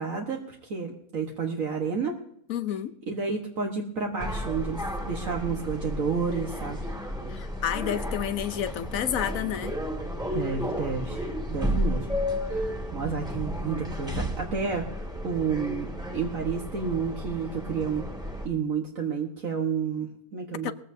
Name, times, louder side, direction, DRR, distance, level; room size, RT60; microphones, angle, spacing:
voice 1, 0.0-2.2 3.1-6.9 10.3-12.1 12.5-18.0 18.4-20.7, right 5 dB, 65° right, 1.8 m, -31 dB
voice 2, 2.5-3.0 7.3-9.8 20.6-20.7, left 10 dB, 70° left, 1.1 m, -30 dB
sound 1, 4.2-18.5, equal, 5° right, 2.1 m, -32 dB
20.5 x 15.0 x 2.7 m
omnidirectional pair, 1.6 m